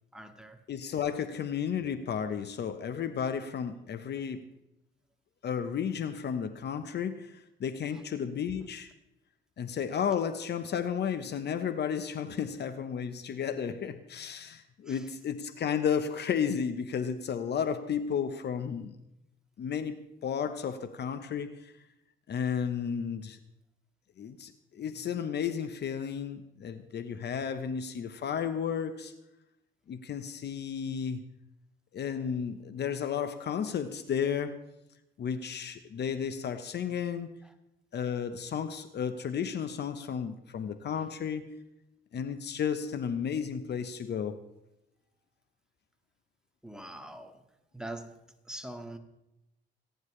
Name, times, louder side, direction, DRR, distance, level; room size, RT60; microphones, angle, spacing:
voice 1, 0.1-0.6 7.9-8.0 14.9-15.1 37.4-37.5 46.6-47.4 47.7-48.2 48.5-49.0, right 1 dB, 5° right, 1.9 m, -43 dB
voice 2, 0.7-4.5 5.4-8.9 9.6-19.0 19.6-21.7 22.3-23.4 24.2-29.1 29.9-31.3 31.9-34.6 35.2-37.3 37.9-41.5 42.1-44.4, left 7 dB, 60° left, 1.0 m, -33 dB
28.5 x 10.5 x 3.3 m
cardioid pair, 90°, 20 cm